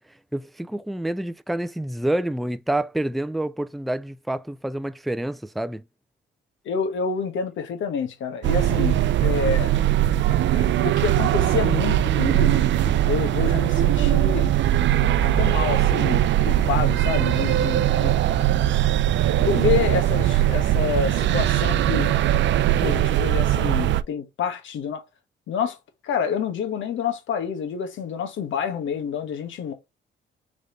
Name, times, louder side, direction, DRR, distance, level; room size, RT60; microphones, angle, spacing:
voice 1, 0.3-5.8, right 1 dB, ahead, 0.4 m, -28 dB
voice 2, 6.6-9.8 10.5-12.7 13.0-14.5 15.2-18.1 19.4-22.1 22.8-25.0 25.5-25.8 26.0-29.7, left 7 dB, 75° left, 1.5 m, -28 dB
sound 1, 8.4-24.0, right 12 dB, 65° right, 0.5 m, -20 dB
4.0 x 3.3 x 3.9 m
cardioid pair, 90°, 20 cm